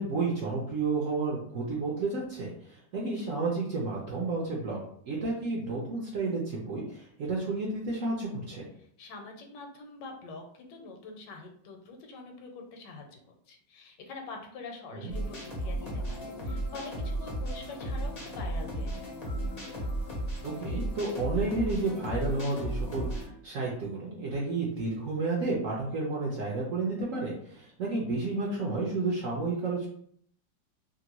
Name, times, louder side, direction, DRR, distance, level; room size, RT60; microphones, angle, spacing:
voice 1, 0.0-4.8 5.1-8.7 14.9-15.1 20.4-29.9, right 3 dB, 65° right, -3 dB, 0.8 m, -31 dB
voice 2, 8.8-13.2 13.5-19.2, left 3 dB, 80° left, 3 dB, 1.2 m, -45 dB
sound 1, 15.1-23.3, right 1 dB, 50° left, 0.4 m, -34 dB
2.9 x 2.5 x 2.9 m, 0.62 s
omnidirectional pair, 1.9 m